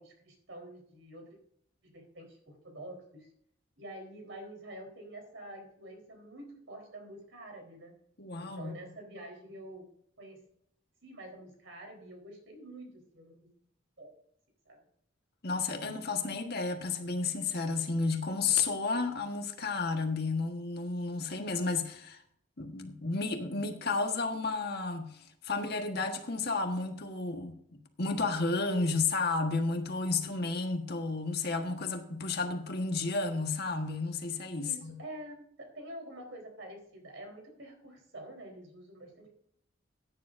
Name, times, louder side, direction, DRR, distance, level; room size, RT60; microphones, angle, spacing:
voice 1, 0.0-1.4 1.8-3.3 3.8-7.9 8.4-9.9 10.2-10.4 11.0-13.5 14.0-14.1 14.7-14.8 34.6-39.3, right 1 dB, 70° right, 4.0 m, -47 dB
voice 2, 8.2-8.7 15.4-22.2 22.6-35.0, left 3 dB, 55° left, 1.5 m, -32 dB
16.0 x 9.8 x 2.6 m
head